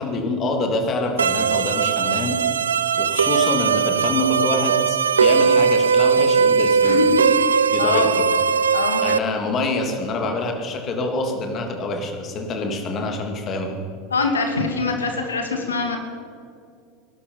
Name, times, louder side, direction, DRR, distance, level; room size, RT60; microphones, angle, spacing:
voice 1, 0.0-2.4 3.0-7.0 7.7-8.2 9.0-13.8, left 2 dB, 40° left, 3 dB, 2.8 m, -26 dB
sound 1, 1.2-9.2, right 6 dB, 80° right, 0.4 m, -19 dB
voice 2, 6.8-7.2 7.8-8.1 8.7-9.0 14.1-16.0, left 4 dB, 80° left, 4 dB, 2.1 m, -23 dB
19.5 x 12.0 x 5.7 m, 2.3 s
figure-of-eight pair, 80°, 0 cm